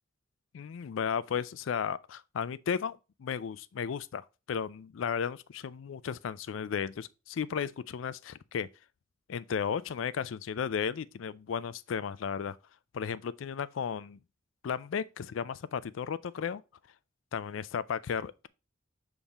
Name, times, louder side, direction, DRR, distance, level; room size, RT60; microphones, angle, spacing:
voice 1, 0.5-8.7 9.3-12.6 12.9-14.2 14.6-16.6 17.3-18.5, left 7 dB, 75° left, 0.4 m, -34 dB
7.2 x 3.6 x 4.0 m
head